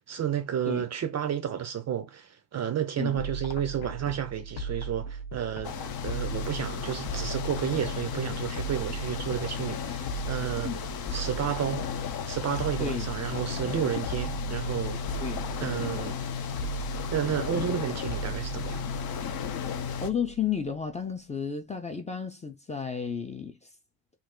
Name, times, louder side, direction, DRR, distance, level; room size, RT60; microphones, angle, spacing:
voice 1, 0.1-5.7 6.0-10.7 11.1-11.8 12.3-15.2 15.6-16.2 17.1-18.9, right 9 dB, 40° right, 0.4 m, -31 dB
sound 1, 3.2-20.8, right 3 dB, 80° left, 0.9 m, -38 dB
sound 2, 5.6-20.1, left 7 dB, 60° left, 0.6 m, -34 dB
voice 2, 12.8-13.1 15.2-15.4 20.0-23.6, left 7 dB, 15° left, 0.4 m, -32 dB
3.2 x 2.4 x 3.6 m
cardioid pair, 160°, 42 cm